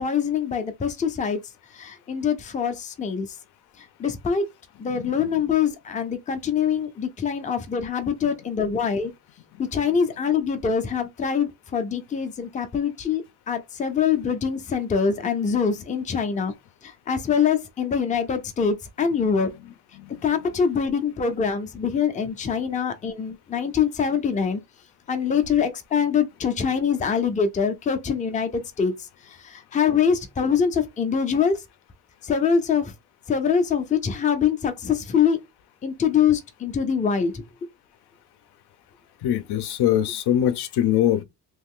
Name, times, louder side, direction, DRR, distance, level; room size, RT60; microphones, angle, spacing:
voice 1, 0.0-1.4 1.7-3.3 4.0-4.4 4.8-9.1 9.6-16.5 16.8-19.5 20.2-24.6 25.1-28.9 29.4-31.6 32.2-32.9 33.3-35.4 35.8-37.4, left 7 dB, 20° left, 0.4 m, -24 dB
voice 2, 4.9-5.3 8.2-8.3 20.0-20.1 39.2-41.2, left 11 dB, 75° left, 0.6 m, -23 dB
3.0 x 2.4 x 3.6 m
wide cardioid pair, 180°, 40 cm